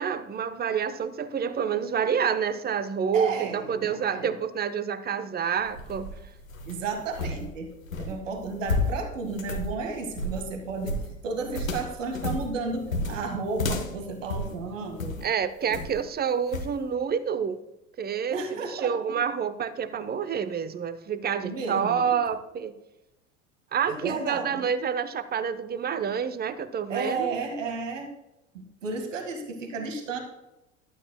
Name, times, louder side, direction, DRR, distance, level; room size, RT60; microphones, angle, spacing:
voice 1, 0.0-6.1 15.2-17.6 18.0-18.4 18.8-22.7 23.7-27.4, right 7 dB, 25° right, 13 dB, 0.9 m, -28 dB
voice 2, 3.1-4.3 6.7-7.7 8.0-10.9 11.2-15.2 15.6-15.8 18.3-19.1 21.4-22.2 23.9-24.6 26.9-28.1 28.5-30.2, right 4 dB, 75° right, 5 dB, 1.8 m, -33 dB
sound 1, 5.6-15.3 15.7-16.1 16.5-16.8, left 2 dB, 85° left, 1.2 m, -32 dB
14.0 x 12.0 x 2.2 m, 0.91 s
figure-of-eight pair, 70°, 39 cm